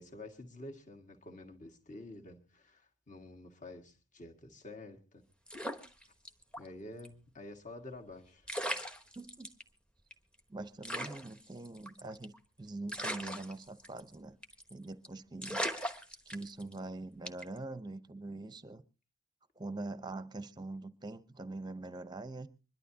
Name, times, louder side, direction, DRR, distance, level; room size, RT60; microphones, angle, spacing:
voice 1, 0.0-5.2 6.6-8.5, left 2 dB, 35° left, 1.8 m, -49 dB
sound 1, 5.5-6.7 7.0-7.1 8.1-8.2 8.5-9.6 10.1-10.2 10.4-10.5 10.8-12.4 12.9-14.1 14.4-14.7 15.0-15.1 15.4-16.8 17.3-17.6, equal, 5° left, 1.0 m, -39 dB
voice 2, 9.2-9.5 10.5-14.4 14.7-15.6 16.3-18.8 19.6-22.5, right 2 dB, 20° right, 0.8 m, -43 dB
25.0 x 11.5 x 2.8 m
head